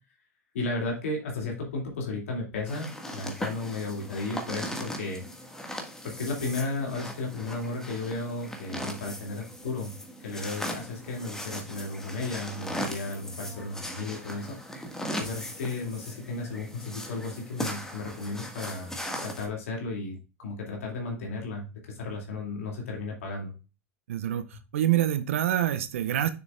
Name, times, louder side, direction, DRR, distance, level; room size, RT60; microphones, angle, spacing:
voice 1, 0.5-5.2 6.0-9.9 10.2-14.6 15.2-18.9 19.2-23.5, left 3 dB, 75° left, 0 dB, 2.4 m, -34 dB
sound 1, 2.7-19.5, equal, 5° left, 1.7 m, -38 dB
voice 2, 24.1-26.3, right 12 dB, 75° right, 12 dB, 0.6 m, -26 dB
6.8 x 6.7 x 2.4 m, 0.31 s
hypercardioid pair, 85°, 7 cm